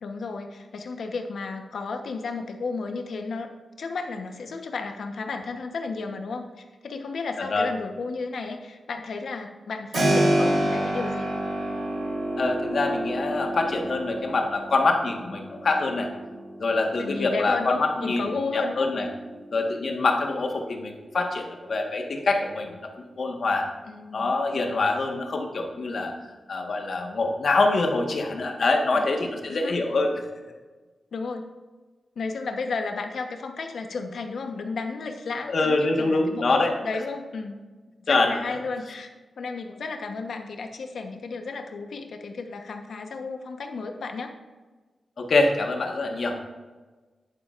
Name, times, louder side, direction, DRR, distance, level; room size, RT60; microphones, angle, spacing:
voice 1, 0.0-3.5 3.8-11.3 17.0-18.9 23.9-24.3 28.9-29.0 29.5-29.8 31.1-31.5 32.2-37.6 38.0-39.1 39.4-44.3, left 4 dB, 85° left, 5 dB, 1.0 m, -33 dB
voice 2, 7.4-7.7 12.4-16.1 16.6-18.2 18.5-19.1 19.5-23.7 24.1-26.1 26.5-30.2 35.5-36.7 38.1-38.4 45.2-46.4, left 3 dB, 65° left, 2 dB, 1.4 m, -25 dB
Keyboard (musical), 9.9-20.6, right 1 dB, 80° right, 3.0 m, -29 dB
10.5 x 9.8 x 2.5 m, 1.3 s
wide cardioid pair, 105°, 0 cm